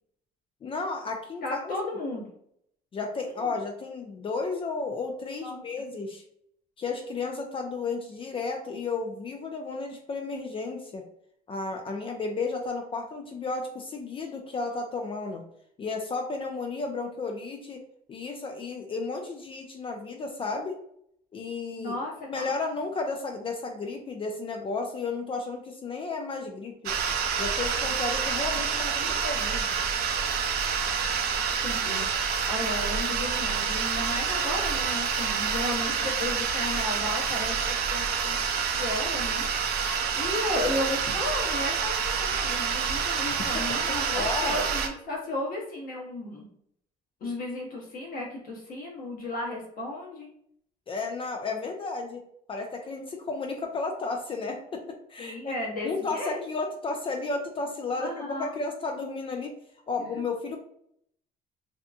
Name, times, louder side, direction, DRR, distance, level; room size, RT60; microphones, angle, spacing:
voice 1, 0.6-1.9 2.9-6.2 6.8-11.0 11.5-15.4 15.8-17.8 18.1-20.7 21.3-21.9 22.3-26.9 27.4-29.7 43.9-44.6 50.9-52.2 52.5-55.5 55.8-59.6 59.9-60.6, left 3 dB, 30° left, 3 dB, 0.4 m, -33 dB
voice 2, 1.4-2.3 3.4-3.6 5.4-5.9 21.8-22.5 28.7-29.2 31.6-38.4 38.7-39.5 39.9-46.5 47.2-50.3 55.2-56.4 57.9-58.5 60.0-60.2, left 2 dB, 60° left, -3 dB, 1.1 m, -34 dB
sound 1, 26.9-44.9, right 6 dB, 70° right, 0.4 m, -28 dB
2.7 x 2.2 x 2.5 m, 0.70 s
cardioid pair, 110°, 17 cm